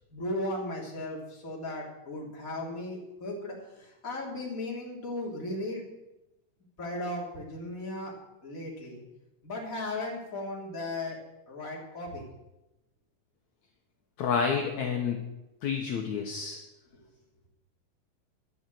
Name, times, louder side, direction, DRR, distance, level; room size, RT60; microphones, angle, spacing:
voice 1, 0.1-5.8 6.8-8.1 8.4-9.0 9.4-11.2 11.5-12.2, left 1 dB, 25° left, -3 dB, 3.4 m, -36 dB
voice 2, 14.2-15.2 15.6-16.6, left 6 dB, 65° left, 1 dB, 2.4 m, -29 dB
12.0 x 10.5 x 7.8 m, 0.96 s
omnidirectional pair, 4.0 m